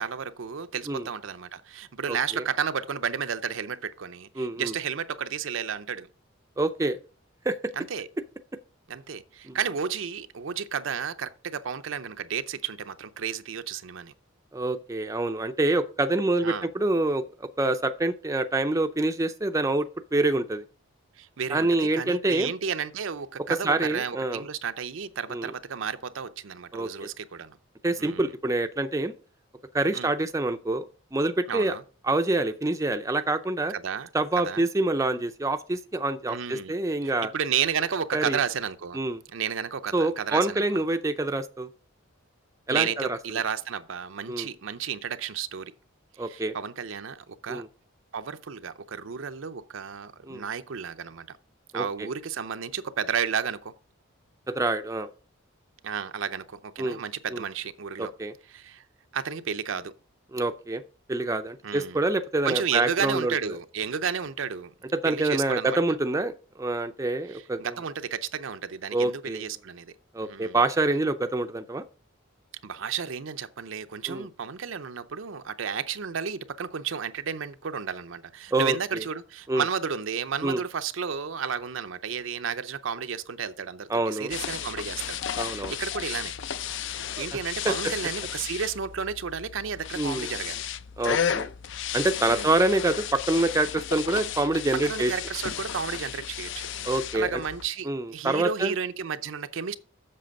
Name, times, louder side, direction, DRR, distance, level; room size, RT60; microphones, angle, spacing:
voice 1, 0.0-6.1 7.8-8.1 8.9-14.1 16.4-16.7 21.2-27.6 28.0-28.3 29.9-30.1 31.5-31.8 33.7-34.1 34.4-34.6 36.3-36.7 37.0-39.0 39.3-40.8 42.7-45.7 46.2-47.6 48.1-51.3 51.7-53.7 55.8-58.1 58.5-58.8 59.1-60.0 61.6-62.0 62.4-64.7 65.0-65.8 67.3-69.9 70.2-70.6 72.6-86.3 86.9-90.6 92.3-92.5 94.8-96.7 97.1-99.7, right 7 dB, 65° right, 0.5 m, -32 dB
voice 2, 2.1-2.4 4.4-4.7 6.6-7.0 7.5-7.6 9.5-9.6 14.5-20.6 21.5-22.5 23.6-24.4 25.3-25.5 26.7-27.1 27.8-29.1 29.7-30.9 31.1-31.8 32.0-33.7 34.1-37.3 38.1-38.4 38.9-39.2 39.9-41.7 42.7-43.2 44.3-44.5 46.2-46.5 47.5-47.7 50.3-50.4 51.7-52.1 54.5-55.1 56.8-57.0 57.3-57.4 58.0-58.3 60.3-60.8 61.1-63.3 64.9-67.8 68.9-69.5 70.1-71.8 74.1-74.2 78.5-79.0 79.5-79.6 80.4-80.6 83.9-84.3 85.3-85.7 87.2-87.3 87.6-87.7 90.0-90.3 91.0-91.5 91.9-95.1 96.8-97.4 97.8-98.7, right 2 dB, 15° right, 0.4 m, -26 dB
sound 1, 84.3-97.7, left 8 dB, 60° left, 0.4 m, -34 dB
7.6 x 6.6 x 5.2 m
head